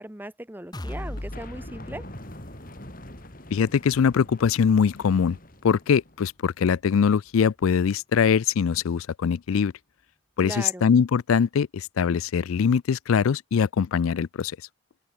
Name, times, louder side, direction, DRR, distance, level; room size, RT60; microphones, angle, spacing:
voice 1, 0.0-2.1 10.4-10.8, right 1 dB, 10° right, 1.0 m, -38 dB
sound 1, 0.7-8.5 8.9-9.0 9.4-9.5, left 1 dB, 20° left, 1.0 m, -43 dB
sound 2, 1.2-6.2, left 1 dB, 40° left, 6.4 m, -44 dB
voice 2, 3.5-5.4 5.6-9.7 10.4-14.5, left 6 dB, 90° left, 0.4 m, -22 dB
open air
head